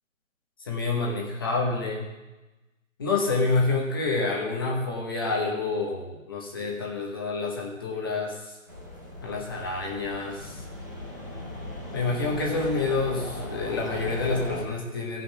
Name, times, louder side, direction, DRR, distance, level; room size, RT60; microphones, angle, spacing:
voice 1, 0.7-2.1 3.0-8.5 9.2-10.6 11.9-15.2, left 3 dB, 15° left, -2 dB, 1.0 m, -28 dB
sound 1, 8.7-14.6, left 1 dB, 15° right, 0.8 m, -38 dB
15.0 x 5.7 x 5.9 m, 1.1 s
hypercardioid pair, 170°, 41 cm